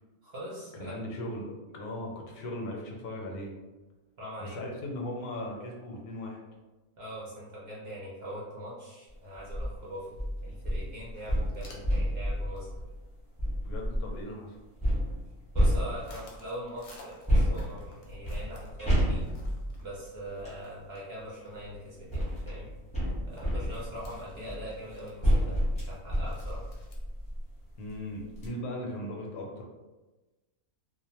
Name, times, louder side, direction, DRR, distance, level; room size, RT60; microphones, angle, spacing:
voice 1, 0.2-1.0 4.2-4.7 7.0-12.8 15.5-19.3 19.8-22.7 23.3-25.6 25.9-26.6, equal, 60° right, -7 dB, 0.7 m, -42 dB
voice 2, 0.8-3.5 4.4-6.4 13.7-14.6 27.8-29.6, left 1 dB, 80° left, -1 dB, 1.1 m, -38 dB
sound 1, 9.4-9.7 10.2-14.2 14.8-16.4 17.3-20.6 21.6-27.5 27.9-28.0 28.3-28.5, equal, 5° left, 0.5 m, -30 dB
sound 2, 10.4-10.5 10.7-10.8 11.0-12.1 12.6-12.8 13.1-13.2 13.6-14.2 14.9-15.4 15.8-21.1 21.5-21.6 22.0-22.1 22.6-22.7 23.0-23.1 23.4-27.0, left 2 dB, 65° left, 0.8 m, -55 dB
2.5 x 2.1 x 2.8 m, 1.2 s
omnidirectional pair, 1.6 m